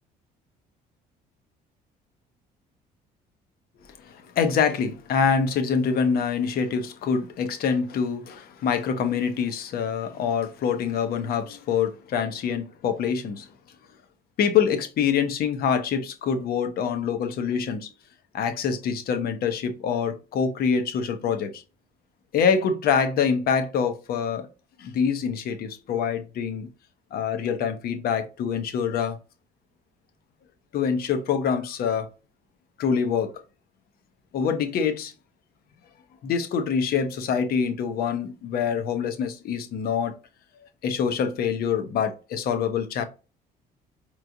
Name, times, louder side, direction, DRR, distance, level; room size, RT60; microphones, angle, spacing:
voice 1, 4.0-13.5 14.4-17.9 18.3-21.6 22.3-24.5 24.8-26.7 27.1-29.2 30.7-32.1 32.8-33.3 34.3-35.1 36.2-40.1 40.8-43.0, left 6 dB, 65° left, 0.9 m, -25 dB
4.6 x 3.1 x 2.6 m
cardioid pair, 110°, 17 cm